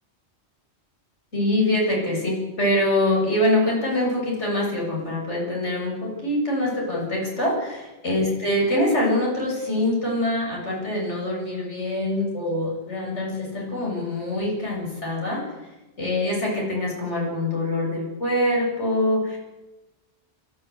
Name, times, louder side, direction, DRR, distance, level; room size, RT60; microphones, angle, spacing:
voice 1, 1.3-15.4 16.0-19.4, left 1 dB, 85° left, -3 dB, 8.0 m, -24 dB
29.5 x 14.0 x 8.2 m, 1.1 s
omnidirectional pair, 1.2 m